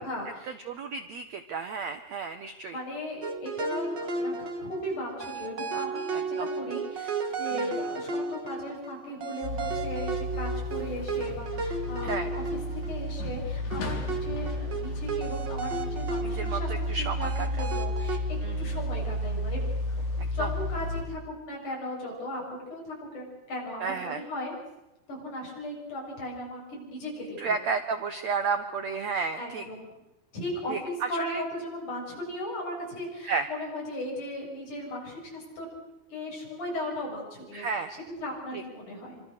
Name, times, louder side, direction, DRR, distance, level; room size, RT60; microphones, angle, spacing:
voice 1, 0.0-0.6 2.7-19.6 19.9-24.5 25.1-27.5 29.4-30.0 30.3-35.7 36.1-39.2, left 1 dB, 50° left, -2 dB, 8.7 m, -37 dB
voice 2, 0.7-2.8 6.1-6.5 7.5-7.8 12.0-12.3 16.3-17.5 18.4-18.8 20.2-20.5 23.8-24.2 27.4-29.6 30.7-31.4 33.2-33.5 37.5-37.9 38.5-38.6, right 5 dB, 85° right, 8 dB, 1.5 m, -32 dB
sound 1, 3.2-13.3 13.7-17.0 17.2-18.2, right 4 dB, 40° right, 1.7 m, -34 dB
sound 2, 9.4-21.0, left 1 dB, 80° left, 5.6 m, -32 dB
26.5 x 25.5 x 6.6 m, 0.97 s
omnidirectional pair, 4.6 m